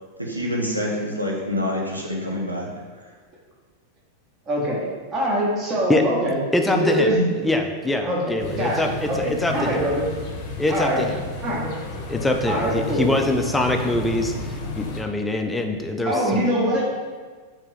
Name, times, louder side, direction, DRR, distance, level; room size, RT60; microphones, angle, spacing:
voice 1, 0.2-2.7, left 1 dB, 85° right, -3 dB, 0.6 m, -26 dB
voice 2, 4.5-6.4 6.7-7.3 8.0-10.1 10.7-11.0 11.4-11.7 12.5-13.1 16.0-16.9, equal, 30° right, -4 dB, 0.9 m, -23 dB
voice 3, 6.5-9.8 10.6-11.2 12.1-16.4, left 2 dB, 10° left, 4 dB, 0.3 m, -24 dB
sound 1, 8.4-15.0, left 2 dB, 40° left, 0.6 m, -32 dB
3.5 x 2.9 x 3.1 m, 1.5 s
figure-of-eight pair, 90°, 0 cm